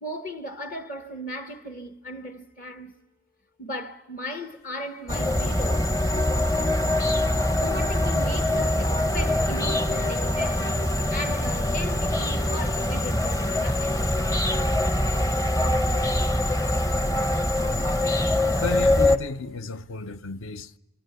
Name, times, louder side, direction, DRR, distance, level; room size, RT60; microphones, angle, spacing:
voice 1, 0.0-2.9 3.6-5.9 7.6-14.0 17.9-18.0, equal, 40° left, 1.1 m, -36 dB
sound 1, 5.1-19.2, left 1 dB, 15° left, 0.8 m, -23 dB
voice 2, 18.6-20.8, left 3 dB, 65° left, 0.8 m, -33 dB
24.5 x 24.5 x 8.1 m
head